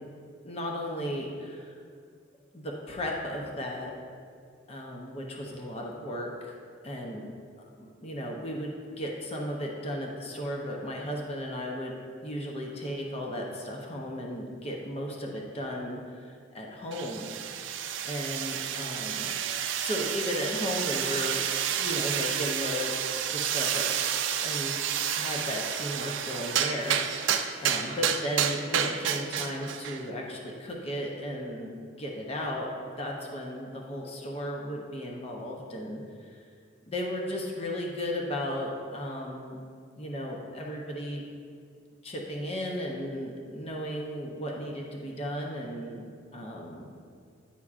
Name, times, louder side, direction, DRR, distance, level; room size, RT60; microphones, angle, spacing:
voice 1, 0.4-1.7 2.5-3.9 4.7-6.5 6.8-7.3 7.8-11.9 12.2-17.7 18.0-19.3 19.8-21.4 21.7-22.9 23.3-23.9 24.1-24.8 25.1-32.7 33.0-36.4 36.9-39.6 40.0-41.2 42.0-46.1 46.3-46.9, equal, 30° left, -1 dB, 0.6 m, -35 dB
sound 1, 16.9-30.0, right 9 dB, 70° right, 0.4 m, -30 dB
9.6 x 5.8 x 2.4 m, 2.2 s
head